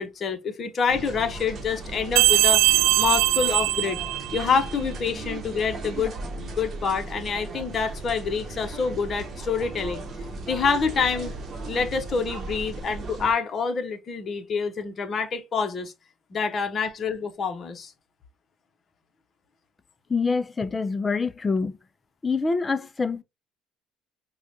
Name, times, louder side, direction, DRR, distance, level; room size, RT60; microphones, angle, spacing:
voice 1, 0.0-4.0 4.3-10.0 10.5-11.3 11.7-15.9 16.3-17.9, left 5 dB, 35° left, 0.9 m, -27 dB
sound 1, 0.9-13.3, right 3 dB, 40° right, 0.9 m, -36 dB
sound 2, 2.2-4.7, right 17 dB, 80° right, 0.3 m, -21 dB
voice 2, 20.1-21.7 22.2-23.2, left 4 dB, 20° left, 0.4 m, -25 dB
4.8 x 2.3 x 2.7 m
cardioid pair, 110°, 0 cm